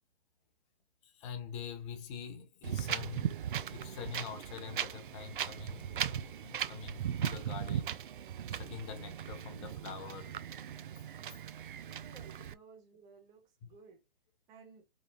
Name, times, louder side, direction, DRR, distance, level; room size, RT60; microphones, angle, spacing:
voice 1, 1.0-8.0 8.5-10.3, left 6 dB, 30° left, 1.1 m, -45 dB
Wind, 2.6-12.5, right 9 dB, 60° right, 0.4 m, -38 dB
voice 2, 11.8-14.1 14.5-14.9, right 5 dB, 15° right, 0.6 m, -57 dB
5.2 x 2.3 x 2.9 m
figure-of-eight pair, 130°, 29 cm